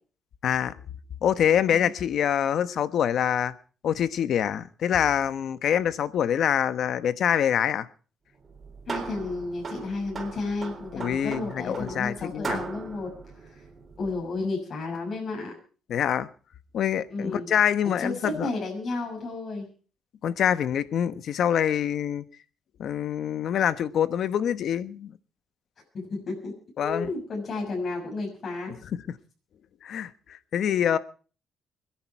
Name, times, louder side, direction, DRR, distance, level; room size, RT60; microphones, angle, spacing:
voice 1, 0.4-0.7 1.2-3.5 3.8-7.9 10.9-12.6 15.9-16.3 16.7-18.5 20.2-22.2 22.8-25.1 26.8-27.1 29.8-31.0, left 9 dB, 70° left, 1.1 m, -25 dB
sound 1, 8.4-14.3, right 4 dB, 40° right, 3.8 m, -38 dB
voice 2, 8.9-13.1 13.5-13.6 14.0-15.5 17.1-17.5 18.0-19.7 25.9-26.5 26.8-28.7, left 3 dB, 50° left, 6.4 m, -32 dB
24.5 x 10.5 x 4.7 m
cardioid pair, 90°, 0 cm